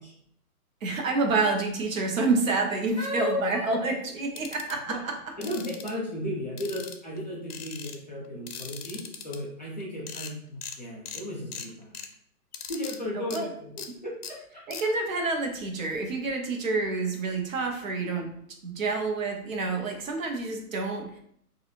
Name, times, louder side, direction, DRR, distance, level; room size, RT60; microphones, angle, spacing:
voice 1, 0.8-5.1 13.1-13.5 13.9-14.0 14.7-18.3 18.6-21.2, right 3 dB, 60° right, 3 dB, 0.7 m, -28 dB
voice 2, 3.0-3.7 4.9-5.0 5.4-12.0 12.7-13.7 14.0-14.6, left 1 dB, 30° left, -6 dB, 0.5 m, -34 dB
sound 1, 4.4-4.7 5.4-5.9 6.6-7.2 7.5-8.0 8.5-9.4 9.8-9.9 10.1-10.3 10.6-10.8 11.1-11.2 11.5-12.1 12.5-13.0 13.3-13.4 13.8-13.9 14.2-14.3 14.7-14.8, left 7 dB, 70° left, 0.6 m, -39 dB
2.5 x 2.4 x 2.8 m, 0.68 s
hypercardioid pair, 165°, 46 cm